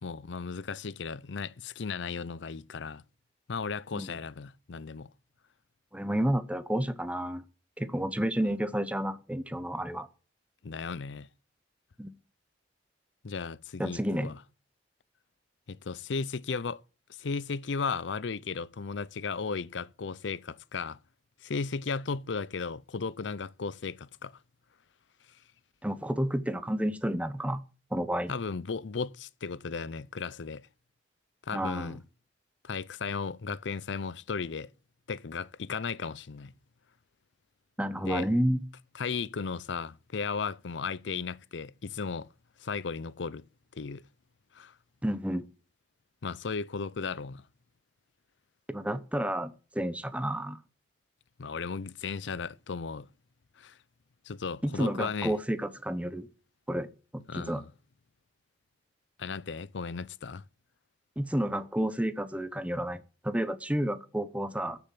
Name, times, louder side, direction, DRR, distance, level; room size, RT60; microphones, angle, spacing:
voice 1, 0.0-3.0 3.5-5.1 10.6-11.3 13.2-14.4 15.7-16.8 17.2-21.0 21.4-24.4 28.3-30.7 31.4-32.0 32.6-34.7 35.1-36.5 38.0-38.3 38.9-42.3 42.6-43.4 43.7-44.0 44.5-44.7 46.2-47.4 51.4-53.1 53.6-53.8 54.3-55.3 57.3-57.7 59.2-60.4, left 5 dB, 75° left, 0.6 m, -35 dB
voice 2, 5.9-7.4 7.8-10.1 12.0-12.1 13.8-14.3 25.8-27.6 27.9-28.3 31.5-32.0 37.8-38.6 45.0-45.4 48.7-50.6 54.6-56.3 56.7-56.9 57.3-57.6 61.2-64.8, equal, 5° right, 1.0 m, -30 dB
13.5 x 7.1 x 7.7 m
head